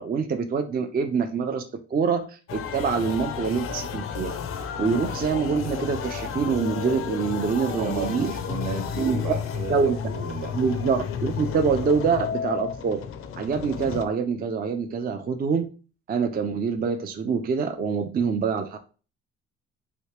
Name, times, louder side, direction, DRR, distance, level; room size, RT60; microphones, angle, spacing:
voice 1, 0.0-1.6 1.9-4.3 4.8-8.3 9.0-9.2 9.7-10.0 10.5-13.0 13.4-15.6 16.1-18.8, right 5 dB, 30° right, 7 dB, 0.4 m, -25 dB
sound 1, 2.5-14.1, left 7 dB, 50° left, 0.4 m, -32 dB
voice 2, 7.7-10.5, right 3 dB, 70° right, 2 dB, 1.2 m, -33 dB
3.1 x 2.8 x 3.0 m, 0.36 s
cardioid pair, 90°, 30 cm